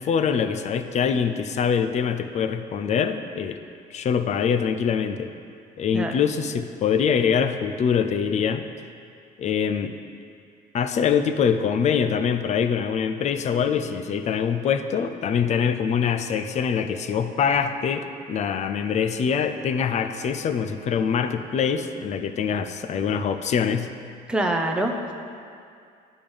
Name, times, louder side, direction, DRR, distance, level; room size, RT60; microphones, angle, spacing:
voice 1, 0.0-3.6 3.9-5.3 5.8-8.6 9.4-9.9 10.7-23.9, left 7 dB, 45° left, 9 dB, 0.4 m, -24 dB
voice 2, 24.3-25.1, right 1 dB, 5° right, 2 dB, 0.6 m, -25 dB
10.5 x 3.6 x 5.2 m, 2.4 s
cardioid pair, 110°, 17 cm